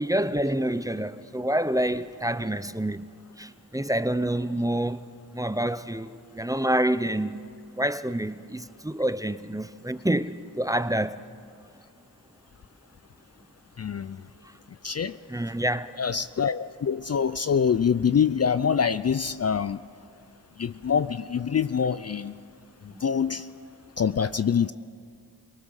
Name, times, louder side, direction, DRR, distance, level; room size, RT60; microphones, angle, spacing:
voice 1, 0.0-3.1 3.4-5.0 5.3-7.4 7.8-11.2 15.3-15.9 22.9-23.0, right 1 dB, 10° right, 0.7 m, -27 dB
voice 2, 13.8-14.2 14.8-15.1 16.0-19.8 20.6-22.3 23.0-23.5 24.0-24.7, left 7 dB, 40° left, 0.5 m, -25 dB
23.0 x 19.0 x 6.5 m
cardioid pair, 60°, 41 cm